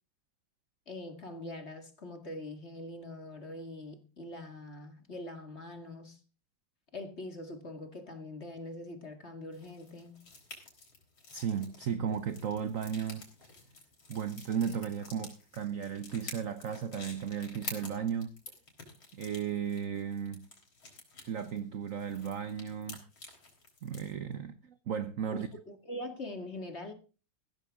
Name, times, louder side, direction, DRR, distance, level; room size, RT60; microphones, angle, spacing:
voice 1, 0.9-6.2 6.9-10.2 25.3-26.9, left 1 dB, 30° left, 2.1 m, -43 dB
sound 1, 9.5-24.1, left 3 dB, 75° left, 5.0 m, -49 dB
voice 2, 11.3-13.2 14.1-18.4 19.1-20.5 21.3-23.0 23.8-25.5, right 7 dB, 60° right, 0.8 m, -35 dB
15.5 x 14.5 x 3.6 m
omnidirectional pair, 2.3 m